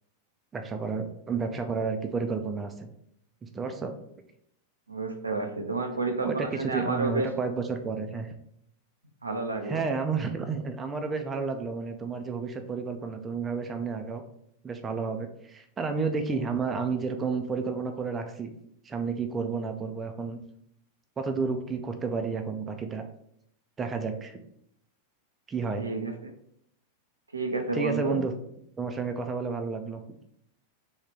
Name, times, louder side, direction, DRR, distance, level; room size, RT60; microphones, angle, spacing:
voice 1, 0.5-2.9 3.4-3.9 5.9-8.3 9.6-14.2 14.6-18.5 18.8-20.4 21.2-23.0 23.8-24.4 25.5-25.8 27.7-28.3 28.8-30.0, right 4 dB, 20° right, 6 dB, 0.4 m, -31 dB
voice 2, 4.9-7.3 9.2-9.8 25.8-26.3 27.3-28.2, right 3 dB, 80° right, 4 dB, 0.5 m, -30 dB
3.5 x 2.3 x 4.5 m, 0.72 s
figure-of-eight pair, 90°, 0 cm